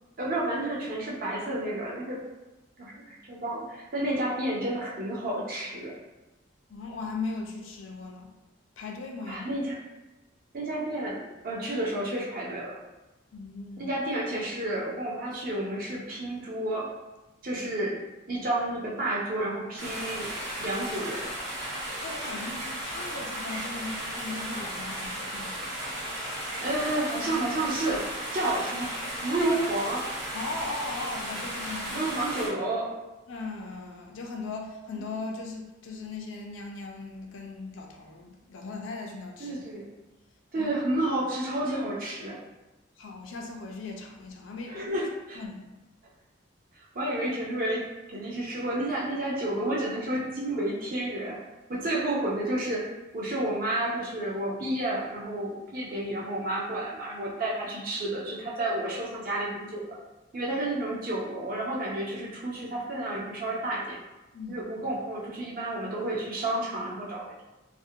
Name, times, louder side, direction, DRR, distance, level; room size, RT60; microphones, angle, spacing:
voice 1, 0.2-2.2 2.8-5.9 9.3-9.8 10.5-12.8 13.8-16.9 17.4-18.0 18.3-20.3 20.6-21.3 26.6-30.1 31.9-32.9 39.4-39.9 40.5-42.4 44.7-45.4 46.8-51.4 51.7-52.9 53.1-60.0 60.3-64.0 64.5-67.4, right 1 dB, 45° right, -4 dB, 0.5 m, -31 dB
voice 2, 6.7-8.3 8.8-9.5 13.3-13.9 22.0-25.7 30.3-32.1 33.3-39.6 40.6-40.7 43.0-45.0 45.4-45.7 64.3-64.6, left 3 dB, 75° left, 1 dB, 0.4 m, -38 dB
sound 1, 19.8-32.5, right 1 dB, 65° right, 0.9 m, -35 dB
2.5 x 2.1 x 2.7 m, 1.1 s
head